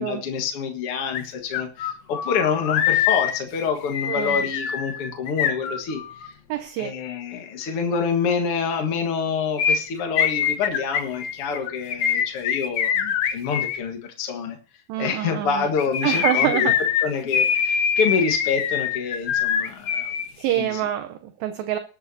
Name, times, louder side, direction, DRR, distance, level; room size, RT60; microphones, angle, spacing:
voice 1, 0.0-6.4 6.8-14.6 15.0-16.7 17.0-20.1 20.6-20.8, left 6 dB, 55° left, 3 dB, 1.6 m, -27 dB
sound 1, 1.1-1.2 1.5-6.3 9.6-13.8 15.6-20.3 20.5-20.6, left 8 dB, 85° left, 1.4 m, -24 dB
voice 2, 4.1-4.4 6.5-6.9 14.9-15.7 16.0-16.8 20.4-21.8, right 12 dB, 75° right, 8 dB, 2.3 m, -26 dB
20.0 x 8.8 x 2.8 m, 0.39 s
omnidirectional pair, 4.6 m